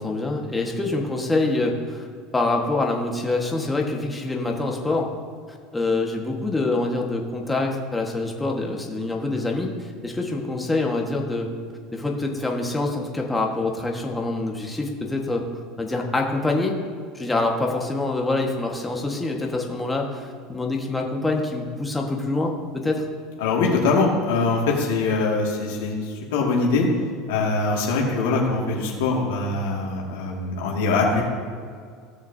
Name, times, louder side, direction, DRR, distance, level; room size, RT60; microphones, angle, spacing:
voice 1, 0.0-2.1 2.3-5.1 5.5-11.5 11.9-15.5 15.8-16.7 17.1-23.1, left 2 dB, 10° left, 0 dB, 1.5 m, -25 dB
voice 2, 23.4-26.9 27.3-31.2, left 3 dB, 90° left, -2 dB, 2.1 m, -23 dB
16.5 x 6.5 x 2.8 m, 2.1 s
supercardioid pair, 120°, 0 cm